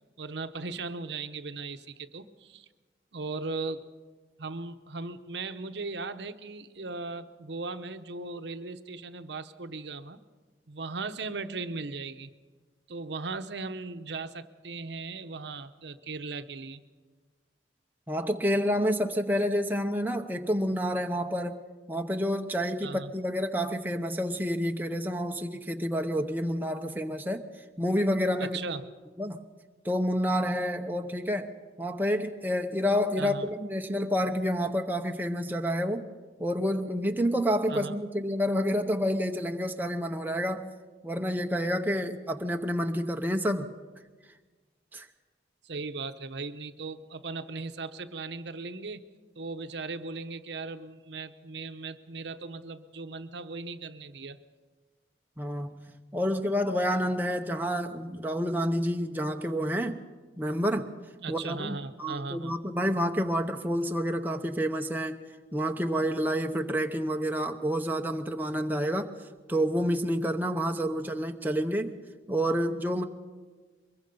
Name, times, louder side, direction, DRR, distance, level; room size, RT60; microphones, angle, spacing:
voice 1, 0.2-2.7 3.1-3.8 4.4-10.2 10.7-12.3 12.9-16.8 22.8-23.1 28.4-28.9 33.2-33.4 37.7-38.0 45.6-49.0 49.4-54.4 61.2-62.5, right 3 dB, 75° right, 10 dB, 0.8 m, -38 dB
voice 2, 18.1-21.6 21.9-27.4 27.8-28.6 29.2-29.4 29.8-31.5 31.8-36.1 36.4-40.7 41.0-43.7 44.9-45.1 55.4-60.0 60.4-60.9 61.3-65.2 65.5-69.1 69.5-72.0 72.3-73.0, equal, 10° right, 4 dB, 0.8 m, -29 dB
23.0 x 21.5 x 5.4 m, 1.4 s
head